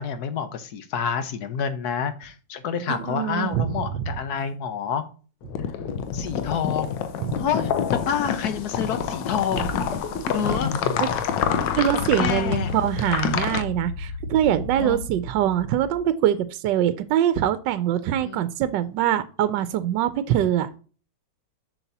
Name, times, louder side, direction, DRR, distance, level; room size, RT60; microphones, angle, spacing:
voice 1, 0.0-5.0 6.1-7.0 7.4-9.7 10.3-10.7 12.0-12.7 14.8-15.0 18.2-18.5, left 7 dB, 65° left, 10 dB, 1.2 m, -28 dB
voice 2, 2.9-4.0 7.2-7.4 11.0-11.1 11.7-20.8, right 11 dB, 80° right, 12 dB, 1.2 m, -23 dB
sound 1, 5.4-13.6, left 7 dB, 85° left, 1.4 m, -27 dB
sound 2, 9.6-16.1, left 4 dB, 50° left, 1.0 m, -33 dB
7.0 x 5.8 x 2.8 m, 0.37 s
omnidirectional pair, 1.9 m